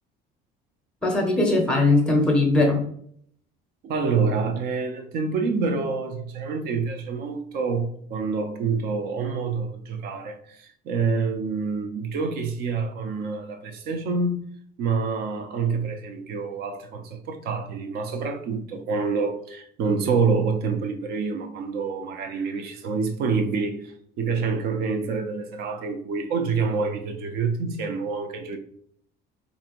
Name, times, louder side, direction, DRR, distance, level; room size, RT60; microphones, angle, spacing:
voice 1, 1.0-2.8, left 2 dB, 5° left, 0.7 m, -20 dB
voice 2, 3.8-14.4 14.8-28.6, right 4 dB, 55° right, 0.6 m, -27 dB
4.3 x 2.6 x 2.9 m
cardioid pair, 170°, 19 cm